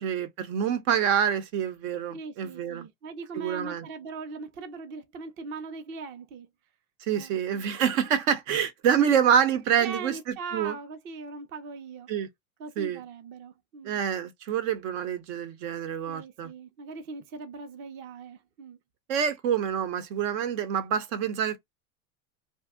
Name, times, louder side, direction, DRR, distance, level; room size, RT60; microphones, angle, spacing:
voice 1, 0.0-2.9 3.3-3.8 7.0-10.2 10.5-10.8 12.1-12.3 12.8-13.0 13.8-16.5 19.1-21.6, right 8 dB, 70° right, 0.8 m, -26 dB
voice 2, 2.1-6.5 7.1-7.6 9.8-12.1 12.6-14.0 16.1-18.8, right 4 dB, 30° right, 0.5 m, -40 dB
2.6 x 2.1 x 3.5 m
supercardioid pair, 140°, 42 cm